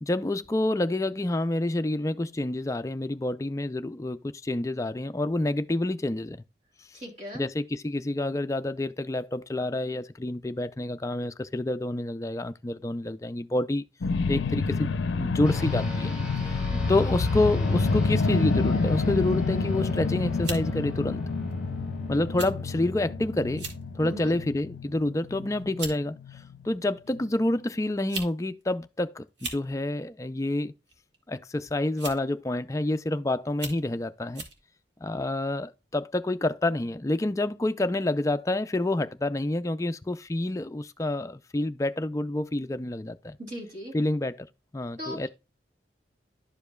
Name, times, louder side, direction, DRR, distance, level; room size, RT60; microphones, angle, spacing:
voice 1, 0.0-6.4 7.3-13.8 14.3-16.1 16.4-16.6 16.9-21.2 22.1-23.7 23.9-30.7 31.3-34.4 35.0-43.4 43.9-44.5 44.7-45.3, left 2 dB, 15° left, 0.4 m, -28 dB
voice 2, 6.9-7.4 16.7-17.0 24.0-24.4 43.5-43.9 45.0-45.3, equal, 40° right, 3.1 m, -38 dB
sound 1, 14.0-26.7 27.2-27.3, left 4 dB, 85° left, 0.5 m, -28 dB
sound 2, 15.4-25.1, equal, 5° right, 2.5 m, -40 dB
sound 3, 19.8-20.0 20.4-20.7 21.5-21.7 22.4-22.5 22.8-23.0 23.5-23.8 24.3-24.6 25.4-25.5 25.8-26.0 27.1-27.2 27.9-28.3 28.6-28.7 29.3-29.6 30.9-31.2 32.0-32.3 32.9-33.0 33.5-33.8 34.3-34.6, right 3 dB, 75° right, 1.8 m, -37 dB
11.5 x 5.1 x 2.3 m
head